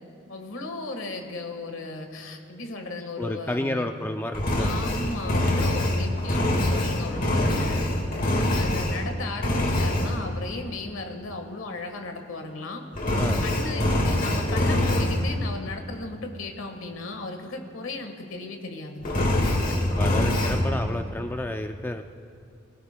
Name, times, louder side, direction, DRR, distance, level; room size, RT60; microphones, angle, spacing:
voice 1, 0.3-3.9 4.6-7.9 8.5-12.8 13.4-19.1, left 2 dB, 70° left, 4 dB, 1.5 m, -36 dB
voice 2, 3.2-4.7 13.2-13.4 19.7-22.0, left 1 dB, 10° left, 5 dB, 0.4 m, -31 dB
Engine, 4.3-9.1 9.4-10.1 13.0-15.2 19.0-20.6, left 1 dB, 45° left, 1.7 m, -24 dB
27.0 x 17.0 x 2.2 m, 2.4 s
head